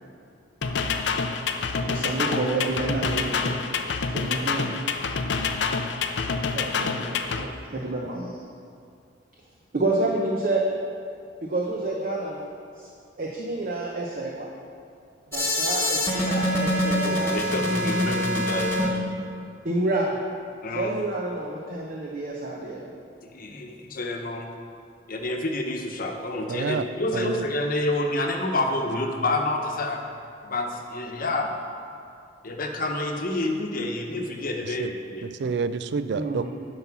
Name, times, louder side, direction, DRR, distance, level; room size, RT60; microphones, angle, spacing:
sound 1, 0.6-7.4, left 5 dB, 70° left, 0.5 m, -27 dB
voice 1, 1.8-3.5 4.0-4.7 6.5-7.1 7.4-8.3 9.7-10.6 11.4-12.5 12.8-12.9 13.2-14.5 15.3-17.3 17.7-18.1 19.6-20.2 20.7-22.8 36.1-36.5, right 2 dB, 50° right, -2 dB, 0.8 m, -28 dB
sound 2, 15.3-18.9, left 1 dB, 10° left, 1.4 m, -25 dB
voice 2, 17.0-19.1 20.6-20.9 23.2-24.5 25.1-30.0 30.4-31.5 32.4-35.3, left 2 dB, 50° left, 2 dB, 1.0 m, -28 dB
voice 3, 26.5-26.8 27.1-27.4 34.6-34.9 35.2-36.5, right 5 dB, 65° right, 13 dB, 0.4 m, -28 dB
9.6 x 5.7 x 5.9 m, 2.4 s
head